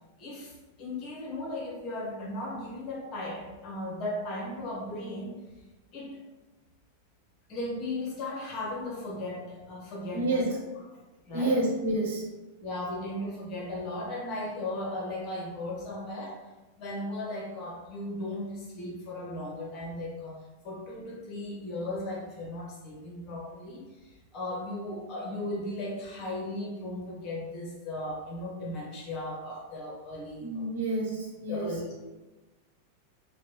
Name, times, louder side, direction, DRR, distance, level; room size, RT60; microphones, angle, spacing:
voice 1, 0.2-5.4 5.9-6.2 7.5-10.5 11.3-11.6 12.6-16.5 16.8-20.4 20.6-30.6 31.5-31.9, left 1 dB, 35° left, -2 dB, 1.1 m, -36 dB
voice 2, 10.1-10.6 11.3-12.2 30.4-31.8, right 2 dB, 60° right, -3 dB, 1.0 m, -29 dB
4.2 x 2.3 x 3.1 m, 1.1 s
figure-of-eight pair, 90°, 0 cm